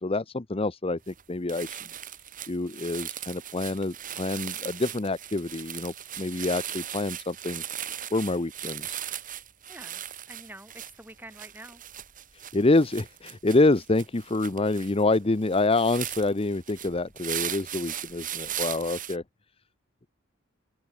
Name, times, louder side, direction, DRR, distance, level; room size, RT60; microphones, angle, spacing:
voice 1, 0.0-1.8 2.5-7.6 8.1-9.0 12.5-19.2, left 2 dB, 25° left, 0.7 m, -26 dB
sound 1, 1.1-1.2 1.5-19.2, right 10 dB, 40° right, 3.5 m, -38 dB
voice 2, 9.7-11.8, right 1 dB, 10° right, 7.0 m, -47 dB
head